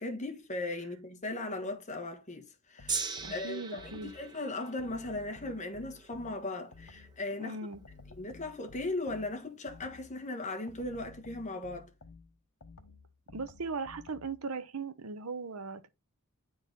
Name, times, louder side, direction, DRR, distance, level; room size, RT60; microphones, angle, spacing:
voice 1, 0.0-7.6 8.2-11.9, left 2 dB, 35° left, 1.3 m, -38 dB
sound 1, 2.8-4.3 4.8-7.3 7.7-10.2 10.7-14.4, left 4 dB, 80° left, 1.0 m, -54 dB
Gong, 2.9-9.2 10.0-10.1, right 4 dB, 20° right, 1.0 m, -42 dB
voice 2, 3.2-4.1 7.4-7.8 13.3-15.9, right 4 dB, 80° right, 0.8 m, -38 dB
9.6 x 3.9 x 3.9 m
head